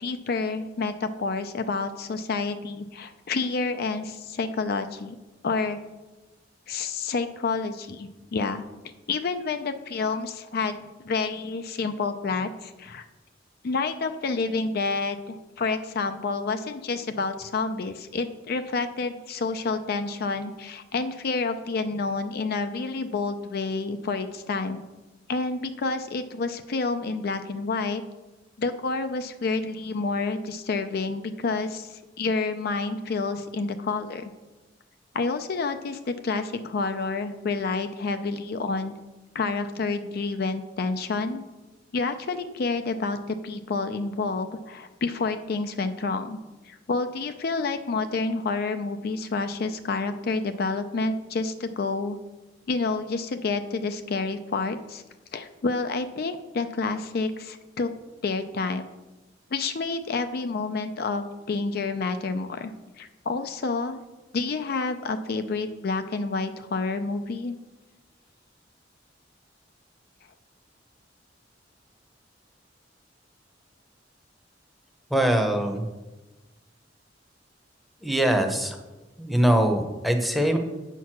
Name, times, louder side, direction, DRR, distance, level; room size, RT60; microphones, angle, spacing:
voice 1, 0.0-5.2 5.4-5.8 6.7-8.7 9.1-13.0 13.6-24.8 25.3-28.0 28.6-34.2 35.1-38.9 39.3-41.4 41.9-46.4 46.6-52.2 52.7-55.0 55.3-57.9 58.2-58.8 59.5-62.7 63.0-64.0 64.3-67.5, left 4 dB, 55° left, 8 dB, 0.4 m, -29 dB
voice 2, 75.1-75.9 78.0-78.8 79.2-80.6, right 1 dB, ahead, 4 dB, 0.8 m, -22 dB
8.3 x 4.5 x 6.0 m, 1.1 s
head